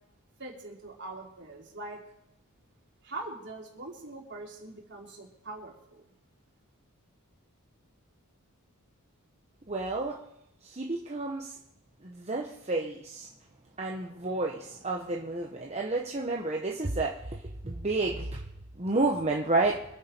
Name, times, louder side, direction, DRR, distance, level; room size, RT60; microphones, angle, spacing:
voice 1, 0.4-2.0 3.0-6.1, right 2 dB, 55° right, -1 dB, 3.8 m, -42 dB
voice 2, 9.7-10.2 10.6-11.5 12.0-13.3 13.8-17.2 17.6-18.4 18.8-19.8, right 2 dB, 30° right, 0 dB, 1.1 m, -30 dB
25.5 x 9.4 x 4.5 m, 0.83 s
head